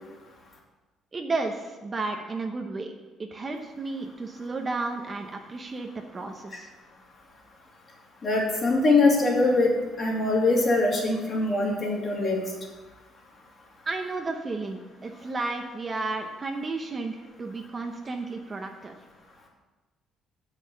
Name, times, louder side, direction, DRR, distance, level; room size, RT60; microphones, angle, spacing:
voice 1, 1.1-2.9 3.2-6.7 13.8-19.0, right 3 dB, 25° right, 3 dB, 0.8 m, -33 dB
voice 2, 8.2-9.7 10.0-12.4, left 3 dB, 35° left, -2 dB, 2.6 m, -22 dB
7.8 x 6.5 x 7.7 m, 1.2 s
cardioid pair, 140°, 0 cm